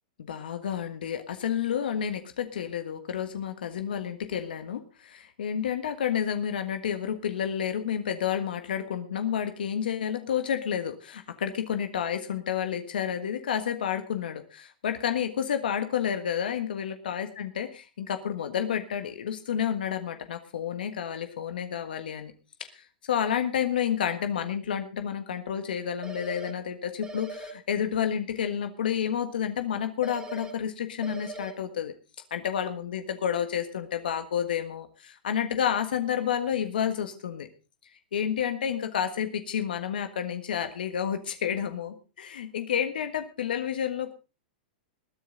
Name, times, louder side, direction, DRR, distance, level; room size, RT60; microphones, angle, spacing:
voice 1, 0.3-17.7 18.0-22.3 22.7-31.9 32.3-37.5 38.1-44.1, left 8 dB, 75° left, 7 dB, 1.5 m, -30 dB
sound 1, 26.0-26.5 27.0-27.5 30.0-30.5 31.0-31.5, right 3 dB, 15° right, 3.2 m, -40 dB
21.0 x 9.8 x 3.9 m, 0.33 s
hypercardioid pair, 115°, 5 cm